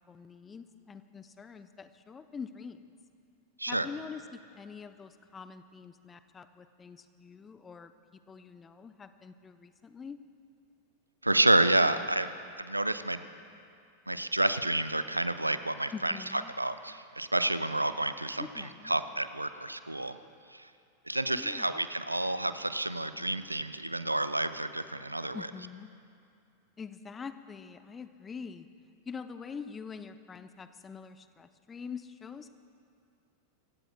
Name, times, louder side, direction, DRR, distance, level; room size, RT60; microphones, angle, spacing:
voice 1, 0.0-2.9 3.7-10.2 15.9-16.5 18.4-18.9 21.3-21.9 25.3-25.9 26.8-28.7 29.1-32.5, left 5 dB, 20° left, 11 dB, 0.6 m, -45 dB
voice 2, 11.2-12.3 12.6-13.2 14.1-20.2 20.5-20.7 21.1-25.4, right 1 dB, 85° right, 12 dB, 0.5 m, -29 dB
26.5 x 15.5 x 2.2 m, 2.4 s
figure-of-eight pair, 90°, 0 cm